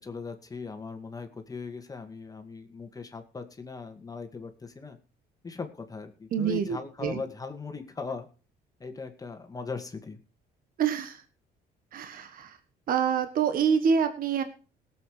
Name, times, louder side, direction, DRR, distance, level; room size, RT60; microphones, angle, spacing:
voice 1, 0.0-5.0 5.4-8.3 8.8-10.2, left 4 dB, 20° left, 7 dB, 2.0 m, -39 dB
voice 2, 6.3-7.2 10.8-11.2 11.9-12.6 12.9-14.4, right 7 dB, 55° right, 9 dB, 1.5 m, -26 dB
18.0 x 7.7 x 5.0 m, 0.36 s
cardioid pair, 110°, 17 cm